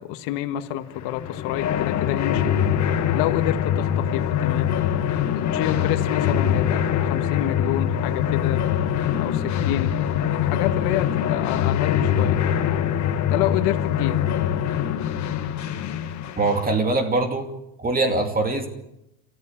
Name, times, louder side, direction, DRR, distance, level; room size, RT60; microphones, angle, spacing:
voice 1, 0.0-2.6 3.1-4.7 5.3-8.6 9.2-12.4 13.3-14.2, left 13 dB, 70° left, 7 dB, 1.7 m, -28 dB
sound 1, 1.0-16.7, left 9 dB, 40° left, 1.7 m, -23 dB
voice 2, 16.4-17.5 17.8-18.7, right 2 dB, 20° right, 5 dB, 2.5 m, -22 dB
28.5 x 14.5 x 7.3 m, 0.86 s
cardioid pair, 140°, 44 cm